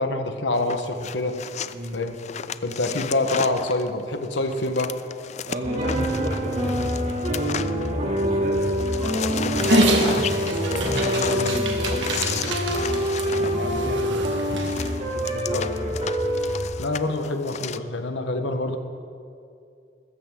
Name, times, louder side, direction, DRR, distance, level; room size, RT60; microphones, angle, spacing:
voice 1, 0.0-1.4 1.9-2.2 2.6-4.9 15.3-15.6 16.8-18.8, left 2 dB, 80° left, 6 dB, 1.3 m, -26 dB
sound 1, 0.5-8.3 8.5-17.8, left 7 dB, 40° left, 0.4 m, -34 dB
voice 2, 5.5-8.6 9.0-10.1 10.4-12.6 13.2-14.4 15.0-16.0, equal, 55° right, -1 dB, 2.7 m, -34 dB
sound 2, 5.6-16.6, equal, 40° right, 2.7 m, -25 dB
Dog, 9.6-14.9, right 1 dB, 90° right, 1.7 m, -27 dB
21.0 x 14.0 x 3.8 m, 2.4 s
head